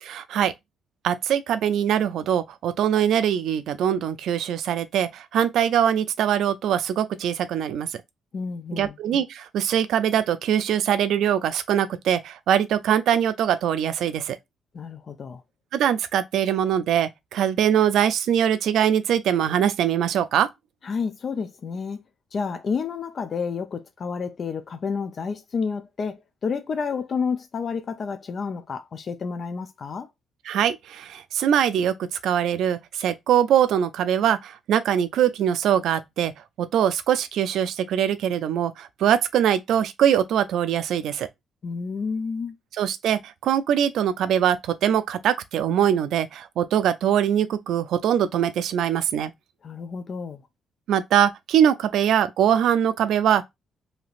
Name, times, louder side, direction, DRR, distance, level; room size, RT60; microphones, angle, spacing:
voice 1, 0.0-0.5 1.0-7.9 8.7-14.4 15.7-20.5 30.5-36.3 36.6-41.3 42.8-49.3 50.9-53.4, right 9 dB, 75° right, 0.4 m, -22 dB
voice 2, 8.3-8.9 14.7-15.4 20.8-22.0 22.3-30.1 41.6-42.6 49.6-50.4, left 5 dB, 50° left, 0.4 m, -30 dB
3.2 x 2.8 x 2.4 m
cardioid pair, 90°, 0 cm